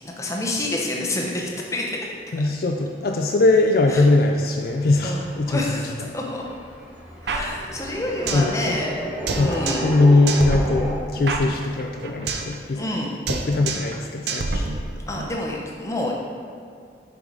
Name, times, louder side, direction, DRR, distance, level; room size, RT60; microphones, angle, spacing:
voice 1, 0.2-1.9 3.9-4.0 5.0-6.4 7.2-8.9 9.3-9.9 12.7-13.1 15.1-16.1, left 1 dB, 15° left, -2 dB, 0.7 m, -28 dB
voice 2, 2.3-5.8 8.3-8.6 9.4-12.9 13.3-14.7, left 2 dB, 55° left, 2 dB, 0.4 m, -21 dB
sound 1, 4.1-11.0, equal, 5° right, 1.1 m, -34 dB
sound 2, 7.3-8.5 8.8-8.9 9.3-10.0 10.3-12.5 12.8-13.0 13.3-14.0 14.3-15.3, right 3 dB, 65° right, 0.6 m, -28 dB
7.0 x 4.8 x 3.8 m, 2.3 s
head